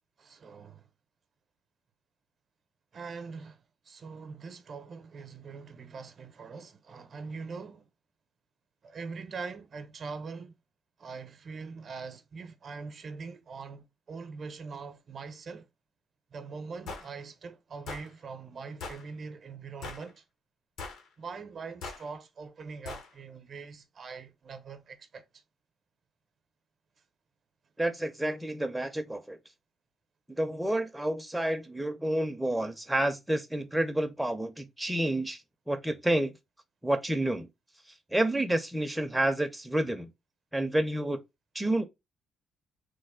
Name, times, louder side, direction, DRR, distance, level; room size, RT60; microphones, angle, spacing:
voice 1, 0.2-0.9 2.9-7.9 8.8-10.5 11.0-15.7 16.3-20.2 21.2-25.2, right 4 dB, 50° right, 0.6 m, -42 dB
sound 1, 16.9-17.1 17.9-18.1 18.8-19.0 19.8-20.1 20.8-21.1 21.8-22.0 22.8-23.1, left 4 dB, 85° left, 0.8 m, -40 dB
voice 2, 27.8-29.4 30.4-35.4 35.7-36.3 36.8-37.5 38.1-40.1 40.5-41.2 41.5-41.9, right 1 dB, 5° right, 0.4 m, -29 dB
3.2 x 2.1 x 3.5 m
cardioid pair, 90°, 0 cm